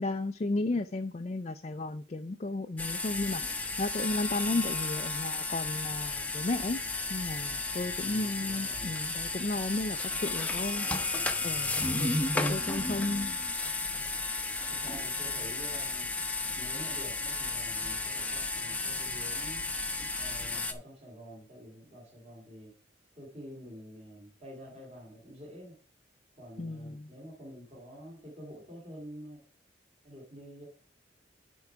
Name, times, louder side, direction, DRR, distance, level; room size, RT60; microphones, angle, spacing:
voice 1, 0.0-6.8 7.1-13.3 26.6-27.1, left 2 dB, 35° left, 0.4 m, -34 dB
sound 1, 2.8-20.7, left 3 dB, 10° left, 0.8 m, -33 dB
voice 2, 8.0-9.0 14.7-16.1 16.5-19.7 20.2-22.8 23.1-25.7 26.4-29.4 30.0-30.7, equal, 35° right, 2.7 m, -48 dB
10.5 x 4.7 x 4.7 m
head